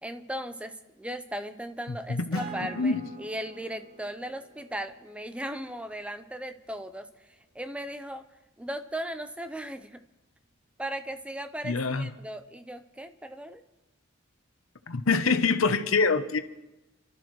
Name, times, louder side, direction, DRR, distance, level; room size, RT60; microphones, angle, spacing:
voice 1, 0.0-8.2 8.6-10.0 10.8-13.6, right 1 dB, 5° right, 9 dB, 0.6 m, -37 dB
voice 2, 1.9-2.4 2.7-3.0 11.6-12.1 14.9-16.4, left 4 dB, 90° left, 10 dB, 0.9 m, -25 dB
Acoustic guitar, 2.3-7.3, right 3 dB, 90° right, 4.8 m, -45 dB
29.0 x 13.0 x 3.2 m, 1.0 s
head